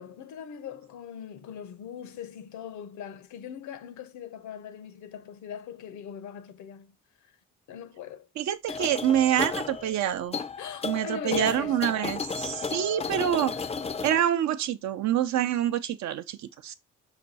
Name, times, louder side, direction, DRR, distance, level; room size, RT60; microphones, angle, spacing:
voice 1, 0.0-7.0 7.7-8.3 8.7-8.8 10.6-12.0, left 9 dB, 70° left, 0.7 m, -40 dB
voice 2, 8.4-10.4 10.8-13.6 14.0-16.7, right 10 dB, 65° right, 0.6 m, -26 dB
sound 1, 8.7-14.2, left 5 dB, 20° left, 0.4 m, -34 dB
5.8 x 2.3 x 4.0 m
cardioid pair, 90°, 30 cm